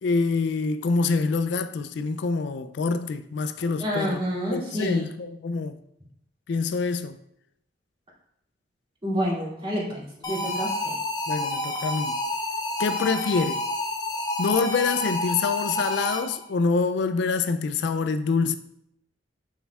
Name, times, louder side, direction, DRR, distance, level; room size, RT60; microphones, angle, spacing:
voice 1, 0.0-4.2 4.5-5.8 6.5-7.2 11.3-12.2 12.8-13.6 14.4-18.6, left 4 dB, 70° left, 0.4 m, -26 dB
voice 2, 3.8-5.1 9.0-11.0, equal, 30° right, 2.4 m, -28 dB
sound 1, 10.2-16.5, left 1 dB, 25° left, 0.7 m, -29 dB
6.9 x 6.3 x 2.3 m
head